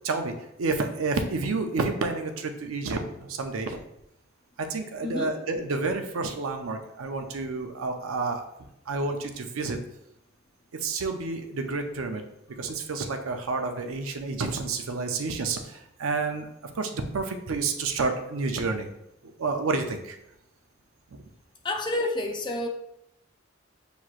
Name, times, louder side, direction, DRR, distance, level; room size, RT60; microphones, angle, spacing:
voice 1, 0.0-3.8 4.6-8.4 8.9-9.8 10.7-12.2 12.6-16.5 16.7-18.9 19.4-20.2, right 3 dB, 90° right, 5 dB, 0.5 m, -29 dB
voice 2, 5.0-5.3 21.6-22.7, left 2 dB, 20° left, 1 dB, 0.4 m, -29 dB
6.0 x 2.9 x 2.4 m, 0.82 s
head